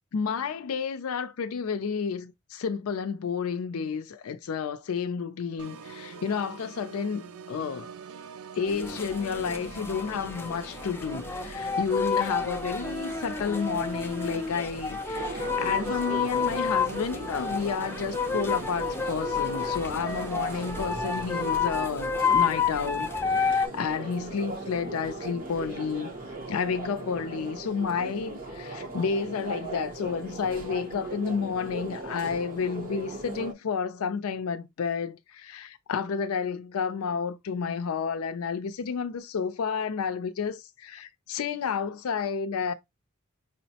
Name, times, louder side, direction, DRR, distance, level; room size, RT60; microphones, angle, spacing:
voice 1, 0.1-7.9 8.6-26.1 26.5-42.7, left 6 dB, 85° left, 0.4 m, -31 dB
Organ, 5.6-21.6, right 6 dB, 80° right, 0.4 m, -44 dB
sound 1, 8.7-23.7, left 5 dB, 10° left, 0.3 m, -30 dB
sound 2, 15.1-33.5, right 2 dB, 40° right, 0.8 m, -38 dB
5.0 x 2.0 x 2.7 m
head